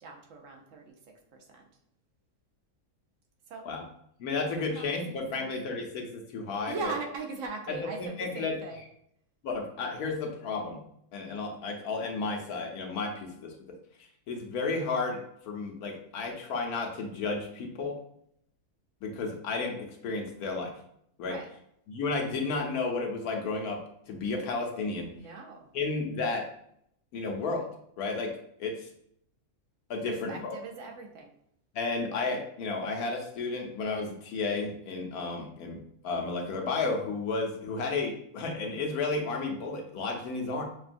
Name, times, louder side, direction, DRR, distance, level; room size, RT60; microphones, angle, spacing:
voice 1, 0.0-1.0 1.3-1.7 3.5-3.7 4.4-4.5 4.7-5.5 6.7-8.8 21.2-21.5 25.1-25.7 30.0-31.3, right 4 dB, 65° right, 2 dB, 1.0 m, -40 dB
voice 2, 4.2-6.9 7.7-8.6 9.4-10.8 11.1-13.8 14.3-18.0 19.0-19.8 20.0-20.7 21.2-21.4 21.9-23.8 24.1-25.1 25.7-26.5 27.1-27.7 28.0-28.3 28.6-28.9 29.9-30.6 31.7-40.6, left 3 dB, 80° left, 2 dB, 1.2 m, -32 dB
5.9 x 2.3 x 2.5 m, 0.71 s
omnidirectional pair, 1.6 m